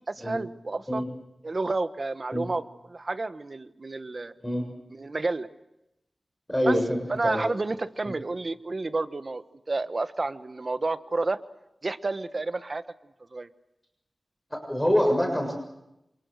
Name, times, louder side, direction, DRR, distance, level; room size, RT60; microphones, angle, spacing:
voice 1, 0.1-1.0 1.4-2.6 2.9-4.3 4.9-5.5 6.7-6.8 7.1-11.4 11.8-12.8 13.3-13.5, right 3 dB, 45° right, 11 dB, 1.3 m, -30 dB
voice 2, 6.5-7.4 14.5-15.5, equal, 5° left, 3 dB, 6.9 m, -25 dB
28.0 x 28.0 x 6.7 m, 0.90 s
wide cardioid pair, 85°, 0 cm